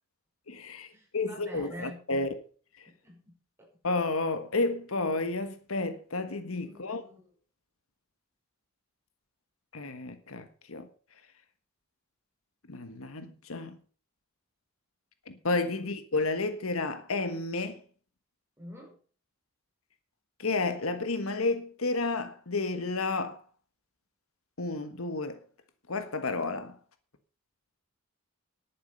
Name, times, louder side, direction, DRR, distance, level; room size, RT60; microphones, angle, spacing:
voice 1, 0.5-0.9 1.1-2.4 3.8-7.0 9.7-10.9 12.7-13.7 15.3-17.8 20.4-23.4 24.6-25.4 25.9-26.8, left 3 dB, 80° left, 1.5 m, -31 dB
voice 2, 1.2-2.0 3.0-3.2 6.6-7.2 18.6-18.9, equal, 10° right, 5.6 m, -45 dB
11.0 x 9.4 x 5.6 m
head